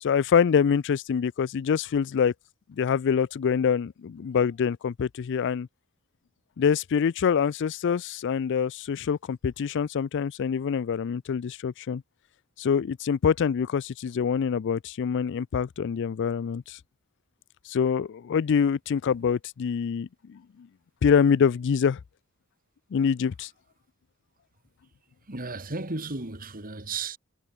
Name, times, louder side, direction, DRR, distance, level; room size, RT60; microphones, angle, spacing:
voice 1, 0.0-2.3 2.7-5.7 6.6-12.0 12.6-16.8 17.7-20.7 21.0-22.0 22.9-23.5, left 7 dB, 60° left, 0.4 m, -25 dB
voice 2, 25.2-27.2, right 3 dB, 40° right, 3.1 m, -34 dB
head